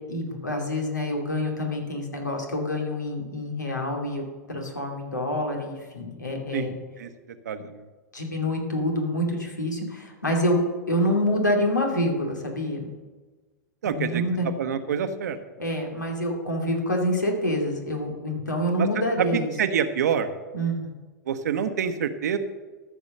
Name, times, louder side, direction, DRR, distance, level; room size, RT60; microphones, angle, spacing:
voice 1, 0.1-6.8 8.1-10.6 10.9-12.9 13.8-14.5 15.6-19.5 20.5-20.9, left 1 dB, 85° left, 1 dB, 2.4 m, -27 dB
voice 2, 7.4-7.8 13.8-14.2 14.6-15.4 18.8-18.9 19.2-20.3 21.3-22.4, right 7 dB, 70° right, 10 dB, 1.0 m, -26 dB
13.5 x 6.2 x 6.6 m, 1.3 s
figure-of-eight pair, 95°, 10 cm